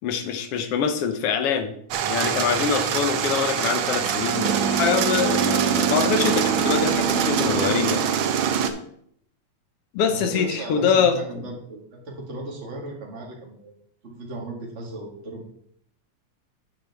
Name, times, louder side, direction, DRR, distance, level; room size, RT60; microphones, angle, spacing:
voice 1, 0.0-1.7 2.1-8.0 9.9-11.5, left 6 dB, 65° left, 7 dB, 1.6 m, -24 dB
sound 1, 1.9-8.7, right 8 dB, 90° right, 1.1 m, -23 dB
voice 2, 10.1-13.7 14.0-15.5, right 2 dB, 25° right, -1 dB, 1.9 m, -36 dB
9.2 x 8.7 x 3.5 m, 0.68 s
omnidirectional pair, 3.4 m